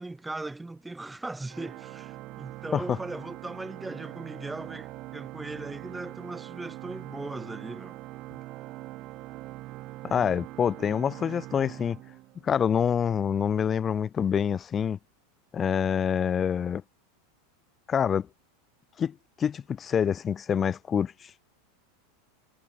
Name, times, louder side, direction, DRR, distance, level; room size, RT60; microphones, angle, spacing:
voice 1, 0.0-8.0, right 2 dB, 10° right, 2.0 m, -38 dB
Organ, 1.5-12.6, right 18 dB, 45° right, 1.0 m, -42 dB
voice 2, 10.0-12.0 12.4-15.0 15.5-16.8 17.9-18.3 19.0-21.3, left 8 dB, 30° left, 0.8 m, -26 dB
hypercardioid pair, 90°, 0 cm